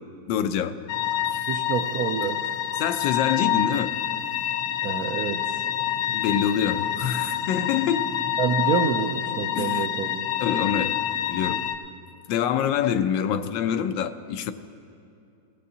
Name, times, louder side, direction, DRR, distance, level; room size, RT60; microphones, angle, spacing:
voice 1, 0.3-0.8 1.3-1.4 2.8-3.9 6.1-8.1 9.5-9.9 10.4-11.0 11.3-11.6 12.3-14.5, left 8 dB, 85° left, 9 dB, 1.3 m, -25 dB
sound 1, 0.9-11.8, left 10 dB, 65° left, 0.9 m, -27 dB
voice 2, 1.5-2.5 4.8-5.7 8.4-10.2, right 7 dB, 70° right, 5 dB, 0.9 m, -27 dB
17.5 x 17.0 x 2.8 m, 2.5 s
omnidirectional pair, 2.0 m